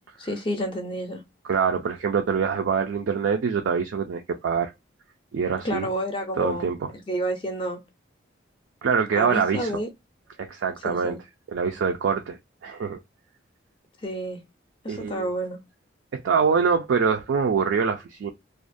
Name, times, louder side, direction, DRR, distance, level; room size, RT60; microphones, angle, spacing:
voice 1, 0.2-1.2 5.6-7.8 9.2-9.9 10.8-11.2 14.0-14.4 14.8-15.6, right 1 dB, 25° left, 0.4 m, -30 dB
voice 2, 1.5-4.7 5.3-5.9 6.4-6.9 8.8-9.7 10.4-11.2 11.5-12.4 12.6-13.0 14.9-15.3 16.1-18.3, right 6 dB, 80° right, 0.3 m, -24 dB
2.4 x 2.1 x 2.5 m
head